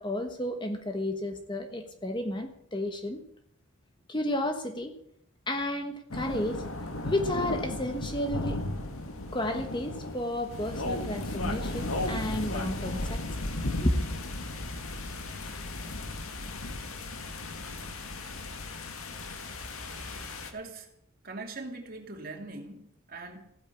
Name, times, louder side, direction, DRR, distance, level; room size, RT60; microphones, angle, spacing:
voice 1, 0.0-3.2 4.1-4.9 5.5-6.6 7.0-8.6 9.3-13.2 13.6-14.1, left 1 dB, 20° left, 6 dB, 1.2 m, -32 dB
sound 1, 6.1-20.5, left 2 dB, 80° left, 2.0 m, -35 dB
voice 2, 20.5-20.9 21.2-23.4, right 3 dB, 40° right, 2 dB, 2.7 m, -41 dB
15.5 x 9.1 x 8.4 m, 0.73 s
head